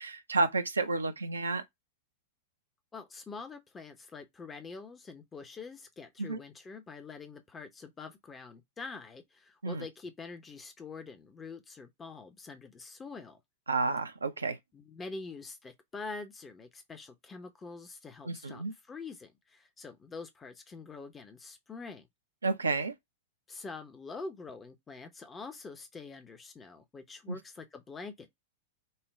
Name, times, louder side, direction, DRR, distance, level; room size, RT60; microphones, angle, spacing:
voice 1, 0.0-1.6 6.2-6.4 9.6-9.8 13.7-14.6 18.2-18.7 22.4-22.9 27.3-27.4, right 3 dB, 75° right, 0.7 m, -31 dB
voice 2, 2.9-13.4 14.7-22.1 23.5-28.3, left 4 dB, 15° left, 0.7 m, -45 dB
5.6 x 2.2 x 3.1 m
figure-of-eight pair, 95°, 0 cm